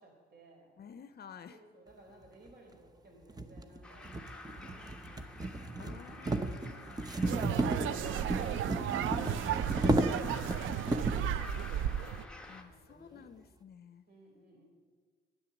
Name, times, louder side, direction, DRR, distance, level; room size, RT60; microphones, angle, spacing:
voice 1, 0.0-0.7 1.5-7.1 7.6-13.4 14.1-14.6, right 1 dB, 50° right, 1 dB, 4.1 m, -58 dB
voice 2, 0.8-1.6 5.8-6.9 7.2-7.5 12.5-14.0, left 7 dB, 50° left, 10 dB, 0.6 m, -52 dB
sound 1, 2.5-2.6 3.3-11.3, right 2 dB, 20° right, 0.8 m, -33 dB
sound 2, 3.8-12.6, left 2 dB, 5° left, 1.3 m, -50 dB
sound 3, 7.2-12.2, right 10 dB, 80° right, 0.5 m, -34 dB
11.0 x 9.9 x 7.2 m, 1.6 s
cardioid pair, 90°, 20 cm